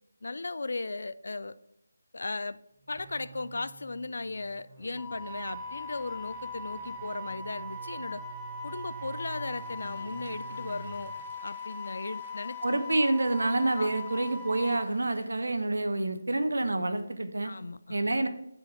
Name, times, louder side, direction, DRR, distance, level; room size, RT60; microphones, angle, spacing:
voice 1, 0.2-1.6 2.1-2.6 2.9-8.2 8.6-11.1 11.4-12.6 13.8-13.9 17.4-18.0, left 3 dB, 60° left, 15 dB, 0.4 m, -36 dB
sound 1, 2.8-11.3, right 3 dB, 25° right, 1.0 m, -48 dB
Wind instrument woodwind instrument, 5.0-14.9, left 2 dB, 5° left, 0.7 m, -40 dB
Applause, 8.8-15.8, left 2 dB, 30° left, 1.5 m, -55 dB
voice 2, 12.6-17.5 17.9-18.3, right 2 dB, 65° right, 8 dB, 1.0 m, -28 dB
7.6 x 4.5 x 6.8 m, 0.79 s
figure-of-eight pair, 155°, 0 cm